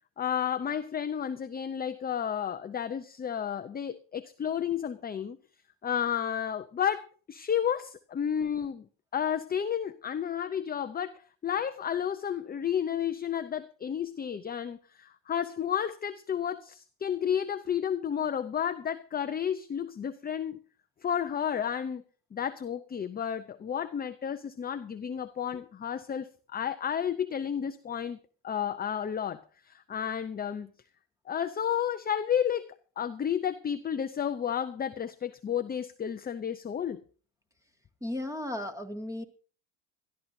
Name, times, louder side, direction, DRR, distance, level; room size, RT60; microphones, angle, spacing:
voice 1, 0.2-5.4 5.8-8.8 9.1-20.6 21.0-22.0 22.3-28.2 28.4-30.7 31.3-32.7 33.0-37.0, left 8 dB, 20° left, 0.6 m, -32 dB
voice 2, 38.0-39.2, left 1 dB, 5° right, 2.1 m, -35 dB
22.0 x 13.0 x 2.7 m
supercardioid pair, 105°, 49 cm